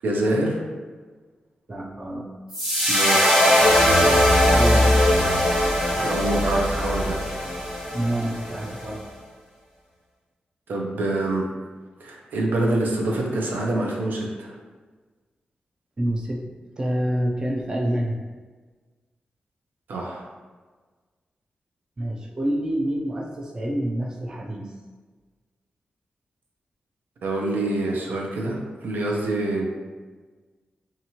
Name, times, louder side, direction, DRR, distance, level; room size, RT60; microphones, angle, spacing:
voice 1, 0.0-0.6 2.9-3.2 5.9-7.2 10.7-11.5 12.0-14.5 19.9-20.3 27.2-29.6, right 1 dB, 85° right, -1 dB, 0.5 m, -25 dB
voice 2, 1.7-2.3 4.5-5.0 7.9-9.0 16.0-16.4 16.8-18.2 22.0-24.7, right 1 dB, 25° right, -1 dB, 0.3 m, -27 dB
sound 1, 2.5-8.8, equal, 5° right, 1.2 m, -20 dB
2.8 x 2.4 x 2.8 m, 1.4 s
wide cardioid pair, 145°, 3 cm